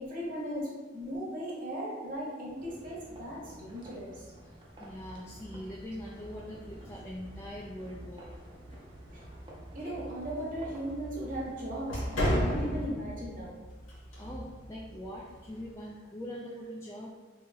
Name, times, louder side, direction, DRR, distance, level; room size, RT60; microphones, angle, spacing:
voice 1, 0.0-4.3 9.1-9.2 9.7-13.6, equal, 45° right, -5 dB, 1.1 m, -37 dB
sound 1, 2.6-12.9, right 1 dB, 25° right, 0.6 m, -52 dB
sound 2, 4.8-15.7, equal, 90° left, 1.3 m, -38 dB
voice 2, 4.8-8.3 14.2-17.1, equal, 15° left, -4 dB, 0.4 m, -42 dB
3.1 x 2.9 x 3.5 m, 1.3 s
head